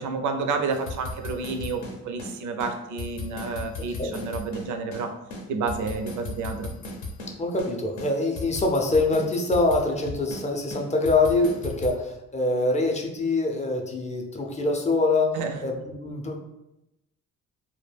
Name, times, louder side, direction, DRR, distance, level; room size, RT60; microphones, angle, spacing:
voice 1, 0.0-5.1 5.5-6.7 15.3-15.6, right 4 dB, 75° right, 6 dB, 0.4 m, -30 dB
sound 1, 0.7-2.3 2.6-2.7 3.0-5.0 5.3-7.3 7.6-7.7 8.0-10.4 10.7-11.9, left 2 dB, 80° left, 0.7 m, -36 dB
voice 2, 3.8-4.2 7.4-16.4, left 2 dB, 25° left, 1 dB, 0.4 m, -24 dB
2.2 x 2.1 x 3.2 m, 0.89 s
cardioid pair, 90°, 30 cm